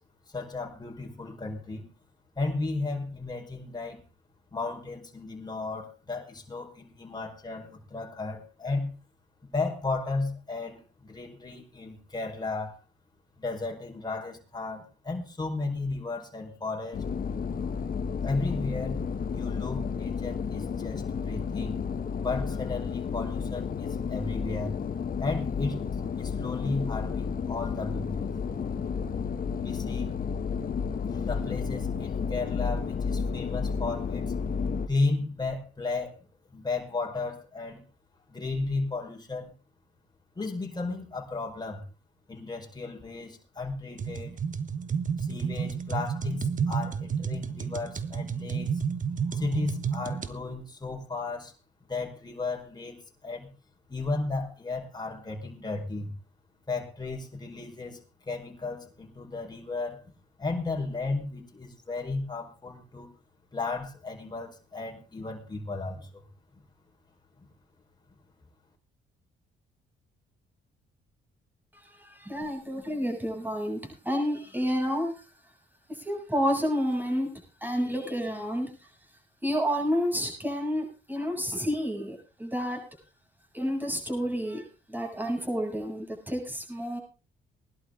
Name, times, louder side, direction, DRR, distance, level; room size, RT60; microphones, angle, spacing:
voice 1, 0.3-1.9 2.3-4.0 4.5-8.9 9.4-12.7 13.4-17.1 18.2-19.0 19.3-24.7 25.2-25.9 26.2-28.3 29.6-30.1 31.1-34.3 34.9-36.2 36.5-37.8 38.3-39.5 40.3-41.9 42.3-44.4 45.2-48.8 49.3-51.5 51.8-53.5 53.9-56.1 56.7-60.1 60.4-63.1 63.5-66.3 67.4-67.5, left 3 dB, 20° left, 1 dB, 4.9 m, -34 dB
sound 1, 16.9-34.9, left 6 dB, 45° left, 1.4 m, -32 dB
sound 2, 44.0-50.3, right 6 dB, 40° right, 1.3 m, -31 dB
voice 2, 71.7-75.2 75.9-78.9 79.4-82.8 83.5-87.0, equal, 10° right, 1 dB, 7.7 m, -30 dB
21.0 x 11.5 x 3.8 m, 0.32 s
cardioid pair, 90°, 20 cm